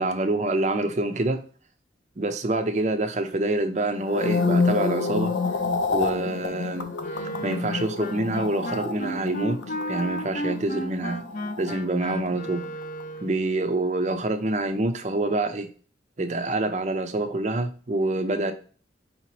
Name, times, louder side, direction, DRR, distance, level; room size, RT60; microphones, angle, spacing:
voice 1, 0.0-1.4 2.2-5.3 5.9-7.0 7.4-9.6 9.9-11.2 11.6-12.7 13.2-15.7 16.2-18.5, right 2 dB, 40° right, 0.5 m, -26 dB
sound 1, 4.0-12.4 12.6-13.0, left 4 dB, 85° left, 0.7 m, -29 dB
Wind instrument woodwind instrument, 7.0-13.4, equal, 45° left, 0.5 m, -33 dB
4.9 x 2.8 x 3.0 m
head